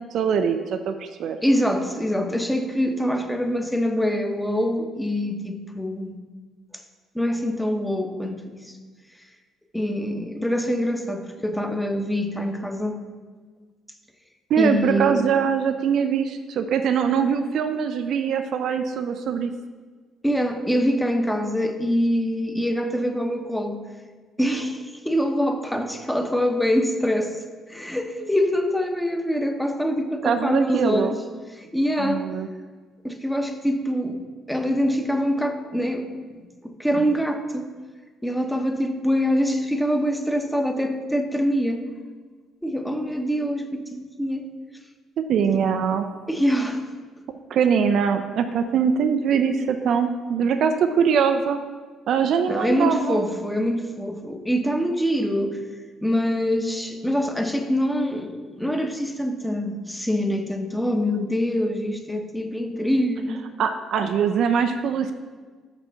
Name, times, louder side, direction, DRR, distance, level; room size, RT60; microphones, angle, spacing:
voice 1, 0.0-1.4 14.5-19.5 30.2-31.1 32.0-32.5 45.2-46.1 47.5-51.6 52.1-53.2 63.6-65.1, right 7 dB, 55° right, 8 dB, 0.4 m, -22 dB
voice 2, 1.4-6.1 7.1-8.7 9.7-13.0 14.6-15.2 20.2-23.8 24.4-27.4 27.7-31.2 31.5-32.3 33.0-34.2 34.5-36.1 36.6-37.7 38.2-41.8 42.6-44.5 45.5-45.8 46.3-46.9 52.5-55.6 56.0-63.4, equal, 5° left, 5 dB, 0.9 m, -24 dB
6.0 x 5.3 x 5.6 m, 1.4 s
figure-of-eight pair, 45°, 0 cm